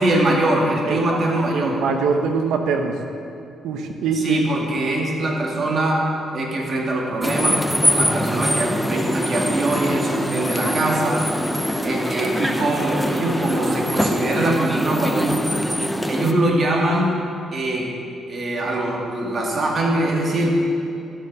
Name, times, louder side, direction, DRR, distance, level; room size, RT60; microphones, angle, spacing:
voice 1, 0.0-1.8 4.1-6.1 6.3-7.6 7.9-11.2 11.8-15.5 16.1-17.2 17.5-17.9 18.3-20.7, right 1 dB, 45° right, -1 dB, 2.2 m, -22 dB
voice 2, 0.8-1.2 1.5-2.9 3.6-4.4, right 5 dB, 85° right, 5 dB, 1.0 m, -23 dB
sound 1, 7.2-16.3, equal, ahead, 0.8 m, -23 dB
13.0 x 6.9 x 6.0 m, 2.5 s
cardioid pair, 90°, 0 cm